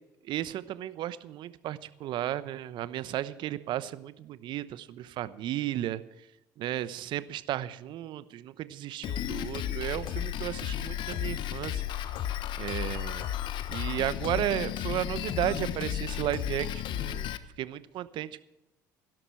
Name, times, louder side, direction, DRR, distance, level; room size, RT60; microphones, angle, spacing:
voice 1, 0.2-6.0 6.6-11.8 12.6-13.4 13.7-18.4, right 13 dB, 55° right, 15 dB, 0.9 m, -34 dB
Drum kit, 9.0-17.4, left 11 dB, 55° left, 1.1 m, -33 dB
16.5 x 12.5 x 4.6 m, 0.91 s
hypercardioid pair, 65°, 9 cm